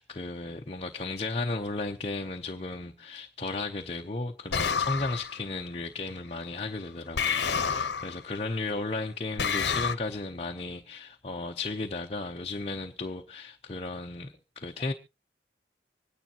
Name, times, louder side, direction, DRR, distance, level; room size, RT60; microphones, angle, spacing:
voice 1, 0.0-14.9, left 3 dB, 35° left, 0.7 m, -34 dB
sound 1, 4.5-5.4 7.2-8.2 9.4-9.9, left 6 dB, 75° left, 0.9 m, -28 dB
25.5 x 9.8 x 2.9 m
head